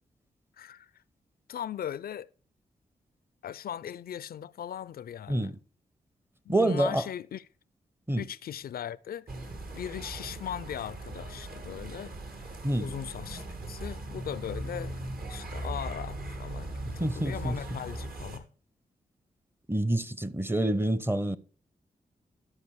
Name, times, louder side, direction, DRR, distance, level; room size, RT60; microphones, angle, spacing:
voice 1, 0.6-0.9 1.5-2.3 3.4-5.5 6.5-7.4 8.2-9.3 9.7-12.1 12.8-18.5, left 10 dB, 65° left, 0.4 m, -39 dB
voice 2, 5.3-5.6 6.5-7.1 8.1-8.2 12.6-12.9 17.0-17.6 19.7-21.4, right 1 dB, 15° right, 0.6 m, -27 dB
sound 1, 9.3-18.4, right 2 dB, 60° right, 1.6 m, -39 dB
12.0 x 5.0 x 4.6 m
cardioid pair, 50°, 17 cm